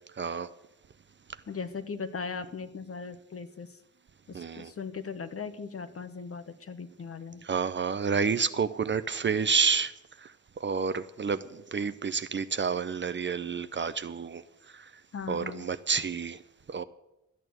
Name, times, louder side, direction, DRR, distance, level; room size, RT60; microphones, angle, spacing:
voice 1, 0.2-0.5 4.3-4.7 7.4-9.9 10.6-14.4 15.3-16.4 16.7-16.8, right 5 dB, 40° right, 13 dB, 0.6 m, -29 dB
voice 2, 1.5-3.7 4.3-7.4 15.1-15.7, left 5 dB, 45° left, 10 dB, 1.1 m, -38 dB
12.5 x 8.8 x 7.9 m, 0.93 s
wide cardioid pair, 105°, 31 cm